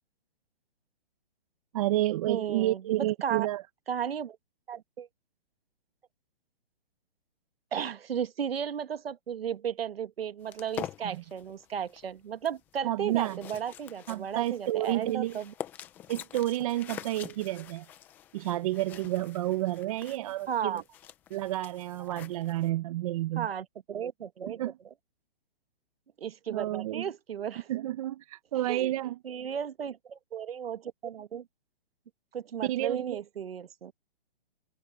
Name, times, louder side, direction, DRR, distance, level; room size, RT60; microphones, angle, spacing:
voice 1, 1.7-3.6 11.0-11.2 12.8-13.4 14.1-15.4 16.1-17.9 18.3-20.8 21.3-23.5 24.5-24.7 26.5-27.1 27.7-29.2 32.6-33.2, right 15 dB, 35° right, 1.1 m, -30 dB
voice 2, 2.3-3.5 3.9-4.4 4.7-5.1 7.7-15.5 20.5-20.8 23.4-24.6 26.2-27.7 28.7-28.9 29.2-31.4 32.3-33.9, right 8 dB, 85° right, 1.4 m, -34 dB
sound 1, 10.5-22.7, left 11 dB, 5° left, 0.4 m, -46 dB
hypercardioid pair, 155°, 29 cm